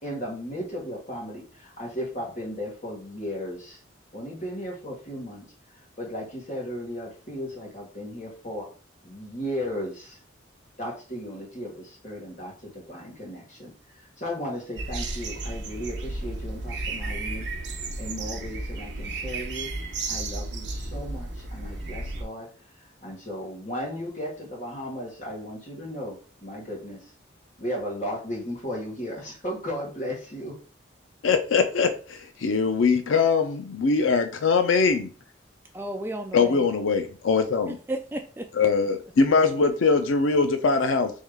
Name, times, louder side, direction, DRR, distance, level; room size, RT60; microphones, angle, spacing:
voice 1, 0.0-3.8 4.1-5.4 6.0-8.7 9.0-10.2 10.8-13.7 14.0-17.4 18.0-19.7 20.1-22.5 23.0-27.0 27.6-30.6, equal, 40° left, -2 dB, 1.6 m, -35 dB
sound 1, 14.8-22.2, right 2 dB, 60° right, 0.8 m, -33 dB
voice 2, 31.2-35.1 36.3-37.8 38.6-41.1, left 4 dB, 85° left, 7 dB, 0.5 m, -22 dB
voice 3, 35.7-36.7 37.6-38.7 39.3-39.4, right 1 dB, 10° right, 4 dB, 0.3 m, -34 dB
3.6 x 3.1 x 3.4 m, 0.39 s
head